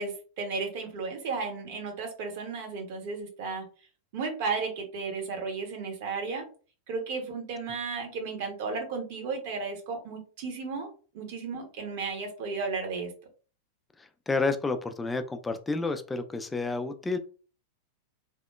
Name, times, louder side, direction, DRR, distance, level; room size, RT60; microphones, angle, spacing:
voice 1, 0.0-3.6 4.1-6.5 6.9-10.9 11.1-13.1, right 4 dB, 50° right, 3 dB, 0.7 m, -34 dB
voice 2, 14.0-17.2, left 3 dB, 10° left, 8 dB, 0.3 m, -30 dB
2.9 x 2.1 x 2.2 m, 0.38 s
figure-of-eight pair, 90°, 0 cm